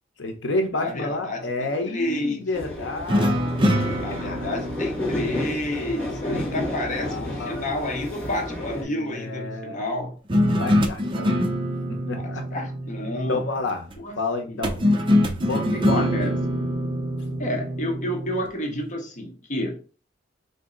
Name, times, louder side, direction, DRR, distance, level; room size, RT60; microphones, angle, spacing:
voice 1, 0.2-4.6 6.3-7.7 8.6-9.8 10.5-11.5 11.9-12.6 13.3-13.8 14.2-14.8 15.5-16.1, left 2 dB, 70° left, 0.8 m, -31 dB
voice 2, 0.8-2.4 4.0-10.2 12.1-12.2 12.5-13.4 14.0-14.2 14.4-14.6 15.7-16.4 17.4-19.8, left 1 dB, 40° left, 1.0 m, -30 dB
sound 1, 2.5-8.8, left 1 dB, 5° left, 1.5 m, -31 dB
sound 2, 3.1-6.5 10.3-13.7 14.6-18.5, equal, 25° right, 0.6 m, -24 dB
3.9 x 2.8 x 3.8 m
head